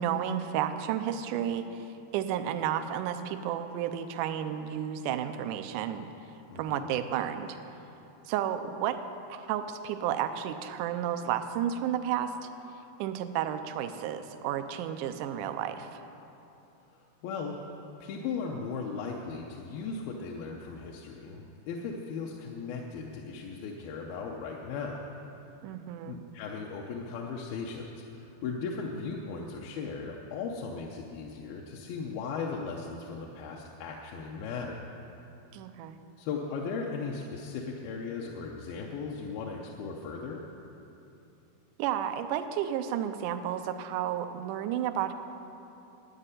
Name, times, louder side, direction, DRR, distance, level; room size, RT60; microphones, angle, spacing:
voice 1, 0.0-6.1 6.6-7.6 8.3-9.0 9.3-12.5 13.0-16.0 25.6-26.2 35.5-36.0 41.8-45.1, right 10 dB, 85° right, 8 dB, 1.9 m, -32 dB
voice 2, 6.5-6.9 16.9-17.6 18.0-25.1 26.1-34.8 36.2-40.4, left 5 dB, 75° left, -1 dB, 2.6 m, -37 dB
12.5 x 8.8 x 9.8 m, 2.8 s
omnidirectional pair, 4.4 m